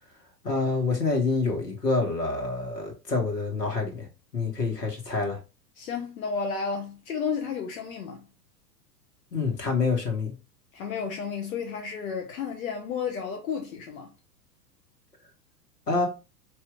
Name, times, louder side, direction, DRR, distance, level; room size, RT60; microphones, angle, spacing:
voice 1, 0.4-4.1 4.3-5.4 9.3-10.3 15.9-16.1, left 3 dB, 80° left, 1.4 m, -27 dB
voice 2, 5.8-8.2 10.7-14.1, left 6 dB, 60° left, 0.9 m, -32 dB
4.3 x 2.7 x 3.6 m
figure-of-eight pair, 95°, 48 cm